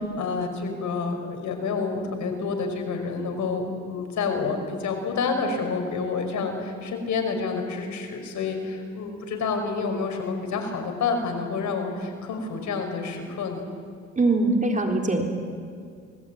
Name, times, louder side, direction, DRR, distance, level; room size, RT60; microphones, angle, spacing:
voice 1, 0.2-13.6, left 4 dB, 70° left, 5 dB, 5.4 m, -28 dB
voice 2, 14.2-15.3, right 2 dB, 25° right, 2 dB, 3.8 m, -22 dB
27.0 x 19.5 x 9.2 m, 2.3 s
cardioid pair, 90°, 30 cm